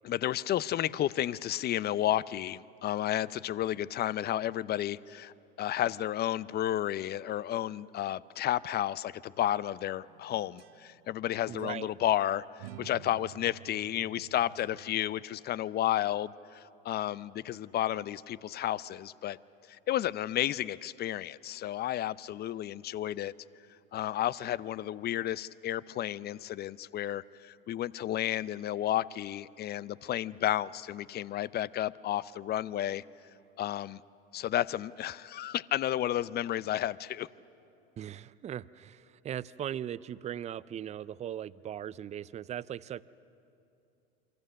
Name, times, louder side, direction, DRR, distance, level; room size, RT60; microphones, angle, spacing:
voice 1, 0.0-19.4 19.7-23.3 23.9-33.0 33.6-34.0 34.3-37.3, left 12 dB, 35° left, 19 dB, 0.5 m, -32 dB
sound 1, 10.1-11.2 11.6-11.7 12.6-15.1, right 14 dB, 70° right, 0.9 m, -51 dB
voice 2, 11.5-11.9 38.0-43.0, right 10 dB, 20° right, 19 dB, 0.5 m, -39 dB
28.0 x 23.5 x 6.5 m, 2.6 s
hypercardioid pair, 85°, 30 cm